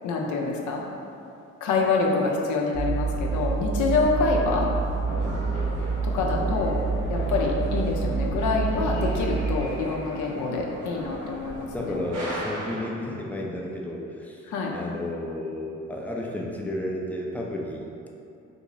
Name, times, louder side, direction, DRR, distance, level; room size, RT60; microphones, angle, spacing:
voice 1, 0.0-0.8 1.6-4.7 6.0-6.8 7.1-12.0 14.5-14.8, left 3 dB, 75° left, -1 dB, 0.6 m, -26 dB
sound 1, 2.7-9.6, right 4 dB, 60° right, 1.0 m, -27 dB
sound 2, 4.5-12.8, equal, 85° right, 1.4 m, -37 dB
voice 2, 5.2-5.5 11.7-18.1, left 1 dB, 5° left, -2 dB, 0.4 m, -32 dB
3.6 x 2.5 x 3.0 m, 2.6 s
cardioid pair, 90°, 30 cm